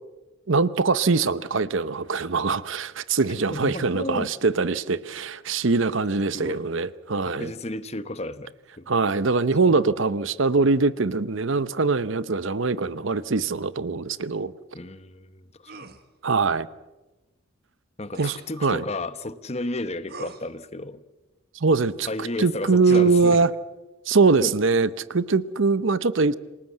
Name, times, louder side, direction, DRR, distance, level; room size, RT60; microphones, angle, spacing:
voice 1, 0.5-7.5 8.9-14.5 16.2-16.7 18.2-18.8 21.6-22.1 22.4-23.5 24.1-26.3, right 4 dB, 65° right, 16 dB, 0.8 m, -22 dB
voice 2, 3.5-4.3 6.3-6.7 7.2-8.9 14.7-15.9 18.0-21.0 22.1-23.4 24.4-24.5, left 2 dB, 30° left, 13 dB, 1.0 m, -33 dB
sound 1, 15.7-16.0 18.1-18.5 20.1-20.5 22.8-23.1, right 3 dB, 45° right, 1.6 m, -41 dB
27.5 x 19.0 x 7.4 m, 1.1 s
head